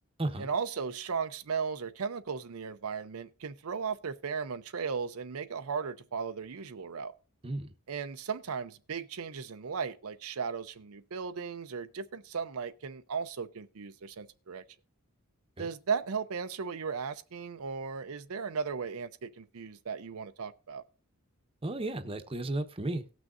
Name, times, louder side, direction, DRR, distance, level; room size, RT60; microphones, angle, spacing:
voice 1, 0.4-7.1 7.9-14.6 15.6-20.8, right 5 dB, 75° right, 0.6 m, -36 dB
voice 2, 21.6-23.0, right 2 dB, 25° right, 0.9 m, -34 dB
18.5 x 6.2 x 2.5 m
head